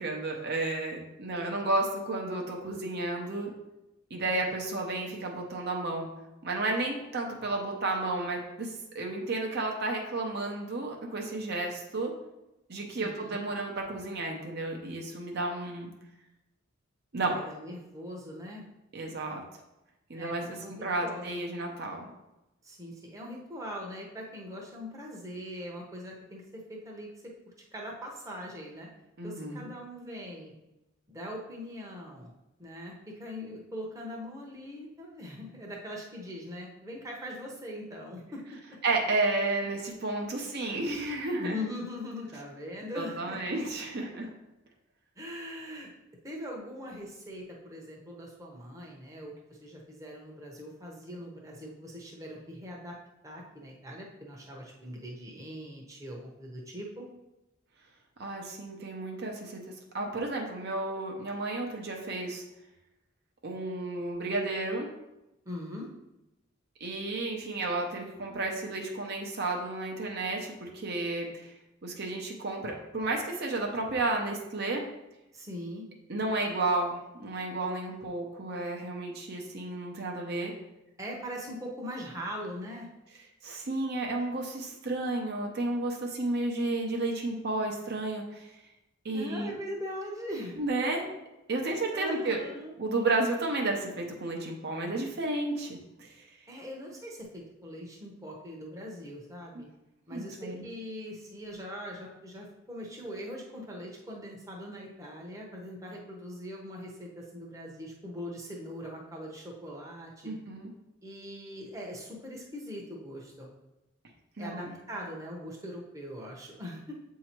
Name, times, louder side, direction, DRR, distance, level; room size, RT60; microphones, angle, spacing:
voice 1, 0.0-3.5 4.1-6.1 6.4-12.1 12.7-15.9 17.1-17.4 18.9-19.4 20.1-22.1 29.2-29.7 38.8-41.6 42.9-44.3 58.2-62.4 63.4-64.9 66.8-71.5 71.8-74.8 76.1-80.5 83.4-88.5 89.0-89.5 90.6-91.1 91.5-92.4 92.8-96.2 100.1-100.6 110.2-110.7 114.4-114.7, right 2 dB, 50° right, 1 dB, 0.7 m, -32 dB
voice 2, 12.9-13.4 17.3-18.6 20.1-20.3 20.6-20.7 21.0-21.2 22.6-27.1 27.7-28.9 29.2-30.5 31.1-32.3 32.6-38.4 41.4-43.6 45.2-45.9 46.2-52.9 53.2-57.1 65.4-65.9 75.3-75.8 81.0-82.9 89.1-90.6 91.6-92.7 96.5-99.7 100.1-110.3 111.0-113.5 114.4-116.9, equal, 15° right, -2 dB, 0.9 m, -41 dB
7.6 x 2.8 x 4.4 m, 0.94 s
head